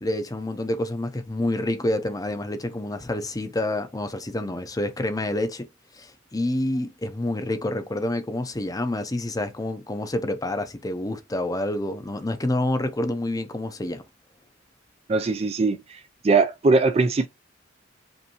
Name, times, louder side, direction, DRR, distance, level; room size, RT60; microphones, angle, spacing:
voice 1, 0.0-5.7 5.9-14.0, left 1 dB, 20° left, 0.6 m, -28 dB
voice 2, 15.1-16.0 16.2-17.3, right 3 dB, 30° right, 0.4 m, -21 dB
5.3 x 2.6 x 2.9 m
head